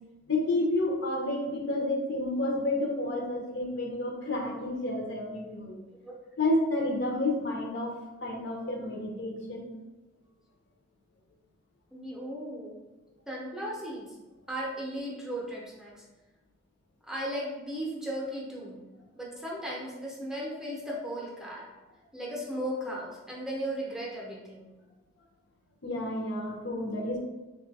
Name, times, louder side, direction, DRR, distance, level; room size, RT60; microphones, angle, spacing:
voice 1, 0.3-5.8 6.4-7.9 8.2-9.7 25.8-27.2, left 1 dB, 60° left, 0 dB, 0.7 m, -30 dB
voice 2, 11.9-12.8 13.3-14.1 14.5-16.0 17.0-18.8 19.2-21.6 22.1-24.7, equal, 5° right, -4 dB, 0.6 m, -36 dB
3.2 x 2.3 x 4.0 m, 1.1 s
head